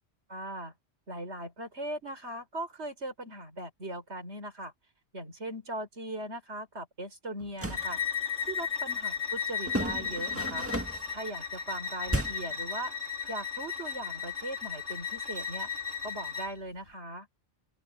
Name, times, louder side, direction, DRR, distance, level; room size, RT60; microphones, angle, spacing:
voice 1, 0.3-0.7 1.1-4.7 5.1-8.0 8.5-10.7 11.1-12.9 13.3-15.7 16.0-17.3, right 1 dB, 80° right, 5.2 m, -39 dB
sound 1, 7.4-7.9 9.7-11.1 12.1-12.6, right 1 dB, 10° right, 1.8 m, -33 dB
Bowed string instrument, 7.7-16.5, left 7 dB, 85° left, 4.0 m, -35 dB
open air
omnidirectional pair, 1.1 m